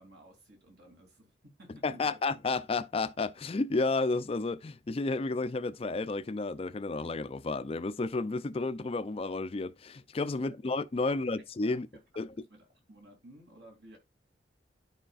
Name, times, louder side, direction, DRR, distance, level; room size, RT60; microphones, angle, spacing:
voice 1, 0.0-2.2 10.5-10.6 11.1-11.2 11.7-11.8 12.5-14.0, right 1 dB, 65° right, 2.8 m, -55 dB
voice 2, 1.8-11.9 12.2-12.3, left 3 dB, 30° left, 0.4 m, -31 dB
11.5 x 5.0 x 2.4 m
head